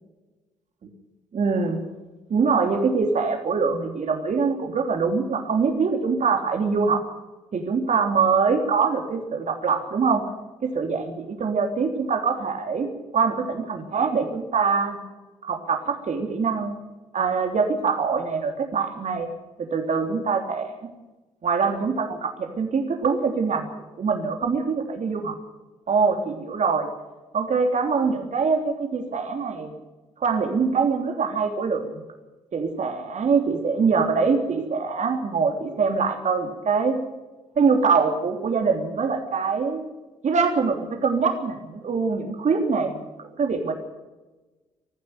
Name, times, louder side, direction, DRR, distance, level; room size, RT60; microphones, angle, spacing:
voice 1, 1.3-1.8 2.3-7.0 7.5-10.2 10.6-12.9 13.1-15.0 15.4-16.8 17.1-19.3 19.6-20.9 21.4-23.7 24.0-25.4 25.9-26.9 27.3-29.7 30.2-32.0 32.5-37.0 37.6-39.8 40.2-43.7, right 5 dB, 50° right, 4 dB, 3.3 m, -23 dB
21.0 x 15.0 x 9.3 m, 1.2 s
hypercardioid pair, 45°, 15 cm